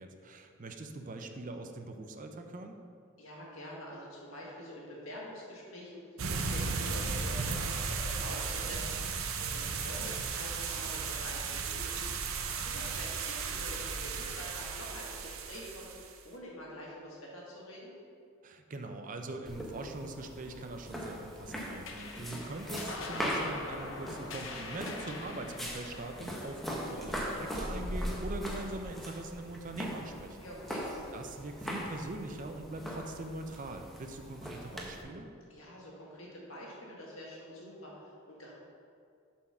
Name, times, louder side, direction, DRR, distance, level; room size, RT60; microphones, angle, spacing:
voice 1, 0.0-2.8 18.4-30.5 30.8-35.3, right 2 dB, 40° right, 5 dB, 0.5 m, -42 dB
voice 2, 3.2-11.9 12.5-17.9 30.4-30.9 35.5-38.5, equal, 80° left, -4 dB, 1.9 m, -46 dB
sound 1, 6.2-16.1, right 5 dB, 80° right, 0.7 m, -35 dB
sound 2, 19.5-35.0, equal, ahead, 0.9 m, -40 dB
sound 3, 21.8-28.6, left 3 dB, 65° left, 0.8 m, -45 dB
7.2 x 4.5 x 5.6 m, 2.4 s
head